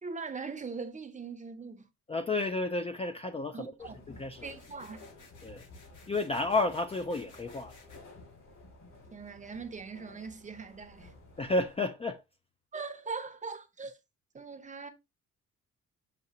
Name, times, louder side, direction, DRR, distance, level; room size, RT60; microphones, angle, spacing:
voice 1, 0.0-1.9 3.5-4.0 4.4-5.1 9.1-11.1 12.7-14.0 14.3-14.9, right 4 dB, 25° right, 0.7 m, -41 dB
voice 2, 2.1-4.5 5.4-5.6 6.1-7.7 11.4-12.2, left 2 dB, 20° left, 0.4 m, -31 dB
sound 1, 3.8-11.8, left 2 dB, 60° left, 2.6 m, -53 dB
sound 2, 4.4-8.0, left 4 dB, 80° left, 1.4 m, -58 dB
6.8 x 2.8 x 2.8 m
cardioid pair, 90°, 30 cm